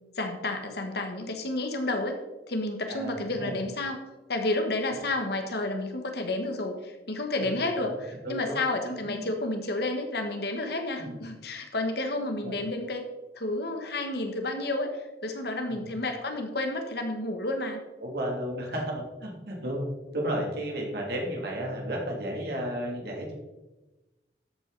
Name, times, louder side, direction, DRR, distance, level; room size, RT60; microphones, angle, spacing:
voice 1, 0.1-2.1 2.5-4.0 4.3-13.1 13.3-17.8, left 2 dB, 65° left, 5 dB, 1.6 m, -31 dB
voice 2, 2.8-3.6 7.4-7.9 8.2-8.6 9.0-9.3 11.0-11.2 12.4-12.6 15.7-15.9 18.0-19.9 20.1-23.3, equal, 60° right, -1 dB, 3.1 m, -33 dB
13.0 x 8.4 x 4.2 m, 1.1 s
head